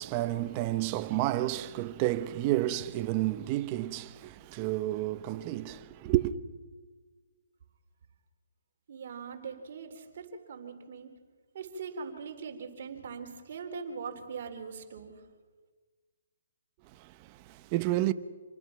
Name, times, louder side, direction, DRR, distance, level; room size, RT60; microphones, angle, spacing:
voice 1, 0.0-6.3 17.0-18.1, right 15 dB, 30° right, 0.9 m, -30 dB
voice 2, 8.9-11.1 11.5-15.2, right 5 dB, 50° right, 3.6 m, -41 dB
27.5 x 20.5 x 5.9 m
hypercardioid pair, 150°, 0 cm